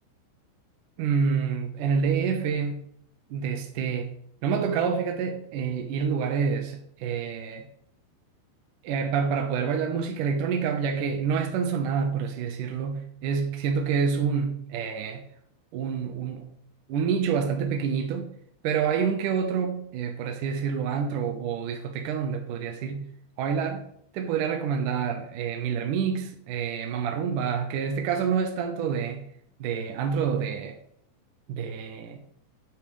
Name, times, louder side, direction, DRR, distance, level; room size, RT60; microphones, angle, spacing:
voice 1, 1.0-2.8 3.3-4.1 4.4-7.7 8.8-15.2 15.7-16.5 16.9-18.3 18.6-23.1 23.4-23.8 24.1-29.3 29.6-30.8 31.5-32.2, right 6 dB, 80° right, 1.9 m, -27 dB
12.5 x 9.4 x 3.3 m
omnidirectional pair, 5.3 m